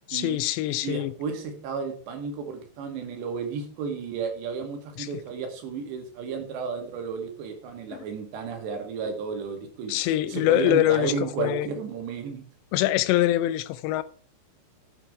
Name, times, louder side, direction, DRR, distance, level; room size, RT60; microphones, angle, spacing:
voice 1, 0.1-1.1 5.0-5.1 7.9-8.0 9.9-11.1 11.4-11.7 12.7-14.0, left 14 dB, 85° left, 2.9 m, -24 dB
voice 2, 0.8-12.5, right 5 dB, 80° right, 4.3 m, -33 dB
12.0 x 8.4 x 4.8 m
omnidirectional pair, 5.0 m